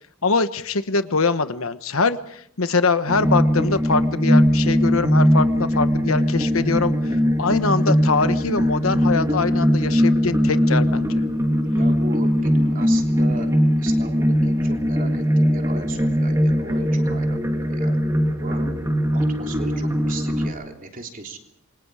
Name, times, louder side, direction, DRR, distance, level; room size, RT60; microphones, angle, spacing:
voice 1, 0.2-6.9 7.4-11.1, left 4 dB, 70° left, 11 dB, 1.2 m, -23 dB
sound 1, 3.1-20.5, equal, 15° right, 2.8 m, -20 dB
voice 2, 11.8-18.0 18.4-18.7 19.1-21.4, right 2 dB, 40° right, 3 dB, 3.4 m, -37 dB
28.0 x 24.0 x 5.0 m, 0.68 s
head